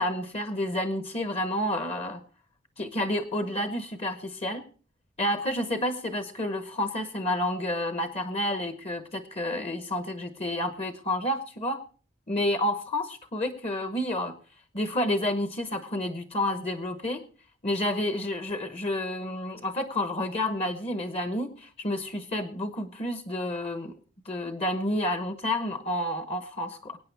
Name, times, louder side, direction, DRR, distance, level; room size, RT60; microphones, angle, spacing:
voice 1, 0.0-2.2 2.8-4.6 5.2-11.8 12.3-14.3 14.7-17.2 17.6-23.9 24.3-27.0, left 1 dB, 30° left, 9 dB, 1.0 m, -30 dB
23.5 x 9.0 x 3.4 m, 0.40 s
head